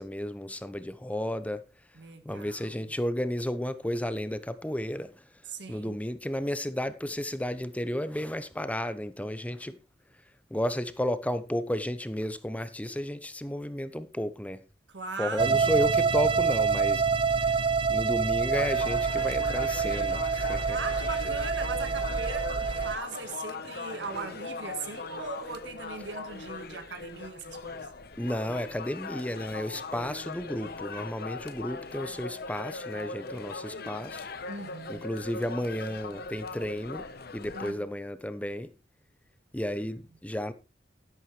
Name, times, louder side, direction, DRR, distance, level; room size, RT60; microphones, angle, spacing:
voice 1, 0.0-1.6 2.2-5.1 5.7-9.8 10.5-14.6 15.2-17.0 17.4-17.6 17.9-20.8 28.2-34.3 34.9-37.1 37.3-38.7 39.5-40.5, left 1 dB, 10° left, 0.9 m, -32 dB
voice 2, 1.9-2.9 5.5-6.0 14.9-15.8 20.7-27.9 34.5-35.1 37.5-37.9, right 4 dB, 85° right, 1.6 m, -39 dB
sound 1, 15.4-23.0, right 5 dB, 30° right, 0.7 m, -26 dB
sound 2, 18.5-37.7, left 4 dB, 60° left, 1.1 m, -40 dB
11.5 x 11.0 x 3.3 m
head